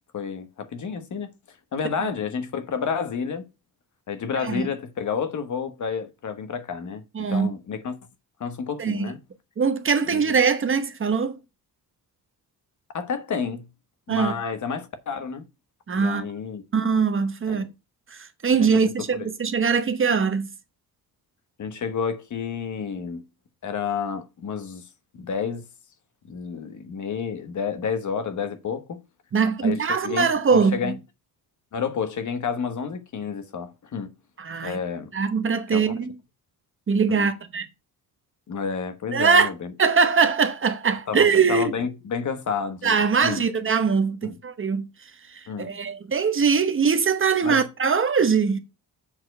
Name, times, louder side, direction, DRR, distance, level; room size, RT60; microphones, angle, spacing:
voice 1, 0.1-1.3 1.7-3.4 4.1-8.0 8.4-9.2 10.1-10.3 12.9-13.7 14.1-15.5 16.0-16.6 17.5-17.7 18.5-18.7 19.1-19.3 21.6-23.2 23.6-24.9 25.1-25.6 26.3-29.0 29.6-30.9 31.7-34.1 34.6-35.1 35.7-35.9 37.1-37.3 38.5-39.7 41.1-43.0 43.2-43.4 44.2-44.4 45.5-45.7 47.4-47.6, left 6 dB, 50° left, 1.2 m, -30 dB
voice 2, 7.1-7.5 8.8-9.1 9.6-11.3 14.1-14.3 15.9-16.2 16.7-17.6 18.1-20.5 29.3-30.9 34.4-34.8 35.1-36.1 36.9-37.7 39.1-39.5 39.8-41.7 42.8-44.9 45.3-48.6, right 5 dB, 35° right, 0.9 m, -22 dB
7.3 x 4.3 x 6.6 m
wide cardioid pair, 155°, 38 cm